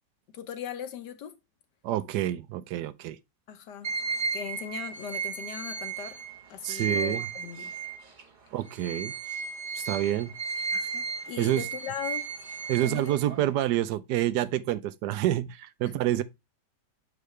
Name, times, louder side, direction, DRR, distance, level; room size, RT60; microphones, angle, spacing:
voice 1, 0.3-1.4 3.5-3.9 4.3-6.2 6.5-7.7 10.7-12.2 12.8-13.2 15.8-15.9, left 9 dB, 75° left, 1.5 m, -39 dB
voice 2, 1.8-3.2 6.6-7.3 8.5-9.1 9.8-10.3 11.4-11.6 12.7-16.2, right 13 dB, 75° right, 1.1 m, -28 dB
sound 1, 3.8-8.2 8.6-13.5, right 5 dB, 35° right, 0.9 m, -34 dB
6.6 x 4.7 x 3.1 m
omnidirectional pair, 1.8 m